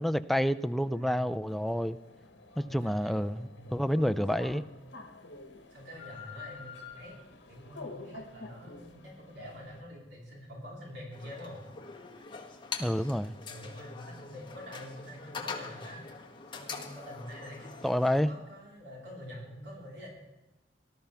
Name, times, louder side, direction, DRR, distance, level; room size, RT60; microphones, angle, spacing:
voice 1, 0.0-2.0 2.6-4.6 12.8-13.4 17.8-18.3, equal, ahead, 0.3 m, -29 dB
voice 2, 0.9-1.3 2.6-3.8 4.3-4.6 5.7-7.2 7.5-11.6 13.5-16.0 16.5-20.1, equal, 80° right, 4.1 m, -46 dB
sound 1, 1.5-9.8, left 3 dB, 70° left, 1.3 m, -48 dB
sound 2, 11.1-18.2, left 4 dB, 25° left, 1.4 m, -43 dB
19.0 x 12.5 x 3.5 m
head